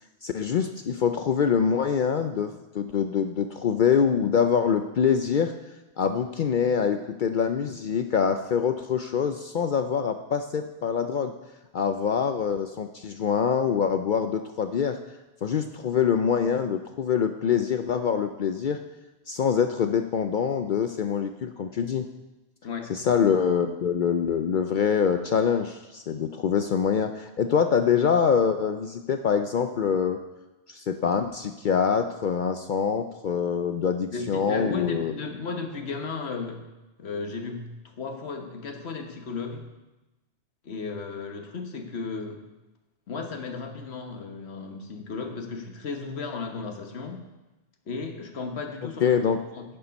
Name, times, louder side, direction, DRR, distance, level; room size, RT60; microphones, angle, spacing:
voice 1, 0.2-5.5 6.0-11.3 11.7-15.0 15.4-18.8 19.3-22.1 22.9-30.2 30.7-35.1 49.0-49.4, left 7 dB, 60° left, 7 dB, 0.6 m, -25 dB
voice 2, 34.1-36.6 37.0-39.7 40.6-42.4 43.1-47.2 47.9-49.6, left 4 dB, 75° left, 4 dB, 1.4 m, -34 dB
10.5 x 7.1 x 5.2 m, 1.0 s
omnidirectional pair, 1.1 m